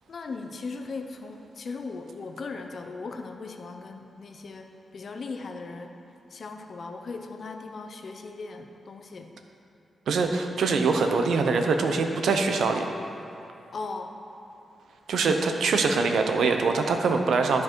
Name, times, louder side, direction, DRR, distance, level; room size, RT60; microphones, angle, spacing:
voice 1, 0.1-5.9 6.3-9.3 13.7-14.1, left 4 dB, 50° left, 5 dB, 0.6 m, -38 dB
voice 2, 10.1-12.9 15.1-17.6, right 4 dB, 85° right, 5 dB, 0.7 m, -23 dB
13.0 x 4.8 x 4.5 m, 2.8 s
wide cardioid pair, 135°, 0 cm